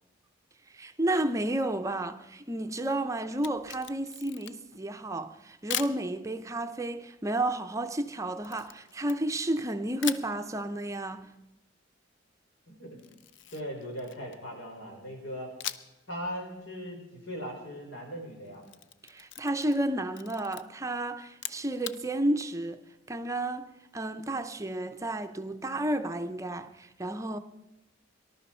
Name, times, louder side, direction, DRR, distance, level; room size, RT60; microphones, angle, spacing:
voice 1, 0.7-11.3 19.0-22.8 23.1-27.4, right 1 dB, 15° right, 0.6 m, -32 dB
Camera, 3.3-4.8 5.7-6.0 8.4-9.6 10.0-10.3 13.0-14.5 15.6-16.0 16.4-16.5 18.4-19.8 20.1-20.6 21.3-22.0, left 10 dB, 65° left, 0.6 m, -39 dB
voice 2, 12.7-13.0 13.5-15.5 16.1-18.6, equal, 85° left, 4.2 m, -39 dB
19.5 x 11.5 x 4.4 m
head